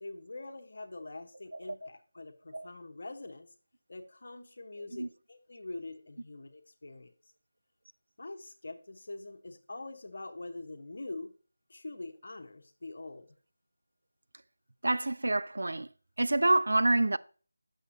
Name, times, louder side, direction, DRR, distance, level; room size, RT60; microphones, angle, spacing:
voice 1, 0.0-3.5 3.9-7.1 8.2-11.3 11.7-13.3, left 2 dB, 55° left, 0.9 m, -44 dB
voice 2, 14.8-15.9 16.2-17.2, right 2 dB, 65° right, 0.3 m, -27 dB
8.1 x 6.5 x 2.7 m
figure-of-eight pair, 165°, 0 cm